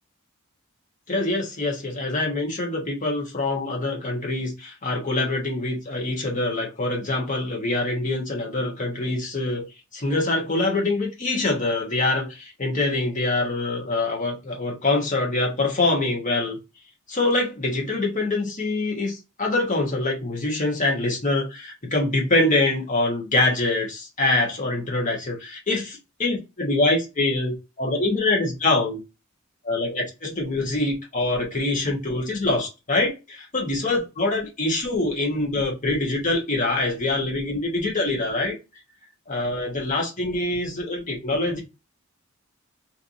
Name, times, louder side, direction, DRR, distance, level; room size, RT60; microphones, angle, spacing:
voice 1, 1.1-9.7 9.9-16.6 17.1-29.0 29.6-38.6 39.3-41.6, left 2 dB, 35° left, 1.2 m, -24 dB
3.3 x 2.7 x 2.6 m
head